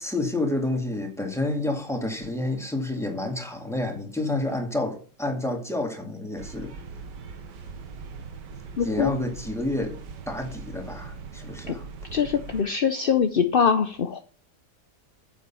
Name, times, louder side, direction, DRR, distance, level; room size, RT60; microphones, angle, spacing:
voice 1, 0.0-6.7 8.8-10.0 10.3-11.9, left 2 dB, ahead, 2.2 m, -29 dB
sound 1, 6.4-12.6, right 5 dB, 80° right, 1.8 m, -40 dB
voice 2, 8.8-9.1 11.7-11.8 12.1-14.2, left 7 dB, 50° left, 0.6 m, -23 dB
9.8 x 7.3 x 5.7 m
omnidirectional pair, 1.8 m